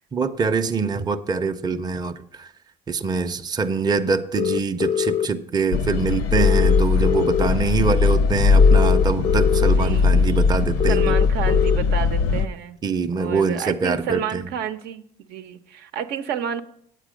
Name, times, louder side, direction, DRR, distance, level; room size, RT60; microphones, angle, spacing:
voice 1, 0.1-2.5 2.9-11.2 12.8-14.4, right 4 dB, 25° right, 6 dB, 0.6 m, -24 dB
sound 1, 4.4-5.3 6.4-7.5 8.6-9.7 10.8-11.8, left 9 dB, 35° left, 0.3 m, -23 dB
sound 2, 5.7-12.5, left 4 dB, 80° left, 0.6 m, -19 dB
voice 2, 9.6-10.1 10.9-12.8 13.1-15.0 15.3-16.6, right 8 dB, 75° right, 8 dB, 0.7 m, -30 dB
9.1 x 8.4 x 5.1 m, 0.66 s
cardioid pair, 110°, 17 cm